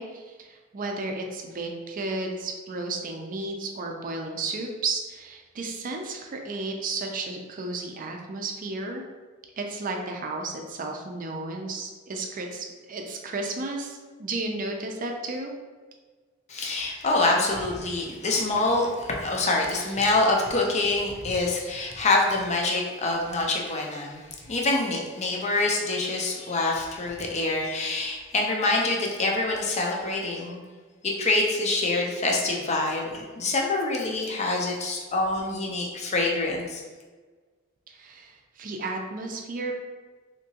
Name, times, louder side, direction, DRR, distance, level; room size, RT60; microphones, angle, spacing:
voice 1, 0.0-9.0 9.6-15.5 37.9-39.7, right 3 dB, 45° right, 3 dB, 0.4 m, -33 dB
voice 2, 16.5-30.7 31.0-36.8, left 2 dB, 35° left, -1 dB, 0.5 m, -26 dB
3.5 x 2.9 x 2.8 m, 1.4 s
head